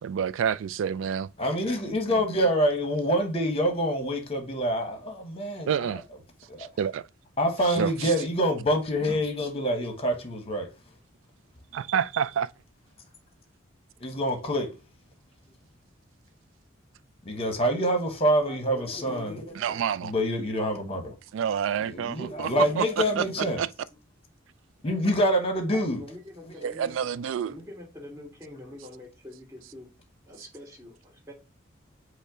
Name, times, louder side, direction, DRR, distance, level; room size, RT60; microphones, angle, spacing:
voice 1, 0.0-1.3 5.7-6.0 6.6-7.0 7.7-8.1 11.7-12.5 19.6-20.1 21.3-22.9 23.2-23.3 23.6-23.7 26.6-27.6, right 8 dB, 75° right, 0.3 m, -28 dB
voice 2, 1.4-5.7 6.5-6.7 7.4-10.7 14.0-14.7 17.2-19.4 20.0-21.1 21.8-23.6 24.8-26.0, equal, 30° left, 1.0 m, -26 dB
voice 3, 18.5-19.4 25.7-26.9 27.5-29.9 30.3-31.3, left 1 dB, 15° right, 1.9 m, -45 dB
5.3 x 2.1 x 4.7 m
head